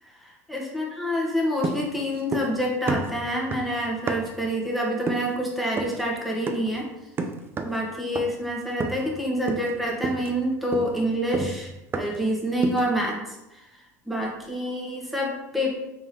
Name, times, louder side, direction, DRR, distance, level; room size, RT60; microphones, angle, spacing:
voice 1, 0.0-6.9 7.6-13.8 14.0-15.7, equal, ahead, -2 dB, 0.9 m, -27 dB
sound 1, 1.6-2.6 2.9-4.5 5.1-5.4 5.8-6.0 6.5-6.8 7.2-7.8 8.1-8.5 8.8-9.2 9.5-9.8 10.0-12.3 12.6-13.0, right 4 dB, 25° right, 0.4 m, -31 dB
3.6 x 2.7 x 3.0 m, 0.95 s
supercardioid pair, 100°, 9 cm